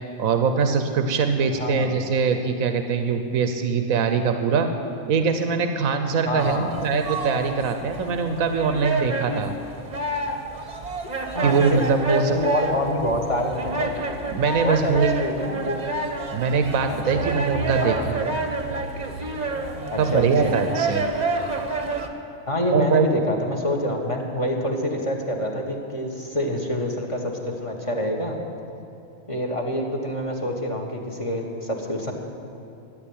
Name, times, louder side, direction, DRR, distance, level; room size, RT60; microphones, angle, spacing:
voice 1, 0.2-4.7 5.1-9.5 11.4-12.3 14.3-15.1 16.3-18.4 20.0-21.0 22.7-23.1, right 5 dB, 90° right, 7 dB, 1.3 m, -22 dB
voice 2, 1.5-1.9 6.3-6.7 11.3-11.8 12.1-13.9 14.6-15.8 16.9-17.3 17.8-18.2 19.9-20.6 22.5-28.4 29.3-32.1, equal, 25° left, 0 dB, 1.6 m, -26 dB
sound 1, 6.4-22.1, right 3 dB, 35° right, 1.1 m, -29 dB
13.5 x 9.7 x 8.8 m, 2.7 s
omnidirectional pair, 1.4 m